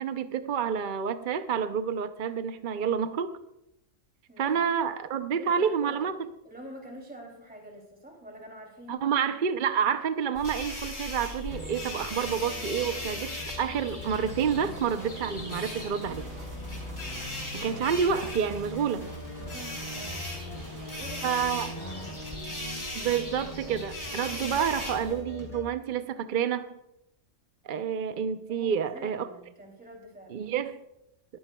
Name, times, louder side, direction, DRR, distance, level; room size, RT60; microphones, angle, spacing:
voice 1, 0.0-3.4 4.4-6.1 8.9-16.2 17.5-19.1 21.2-21.7 22.9-26.8 27.6-29.3 30.3-30.8, right 7 dB, 50° right, 0.6 m, -29 dB
voice 2, 4.3-4.6 5.4-6.0 6.4-9.0 18.8-19.0 19.5-20.2 20.6-21.4 21.8-22.5 28.5-30.3, equal, 5° right, 2.7 m, -47 dB
sound 1, 10.4-25.1, left 1 dB, 80° left, 4.3 m, -39 dB
sound 2, 11.5-25.6, left 1 dB, 30° left, 3.4 m, -41 dB
sound 3, 14.0-22.4, right 2 dB, 75° right, 3.0 m, -46 dB
19.5 x 14.0 x 2.2 m
omnidirectional pair, 1.3 m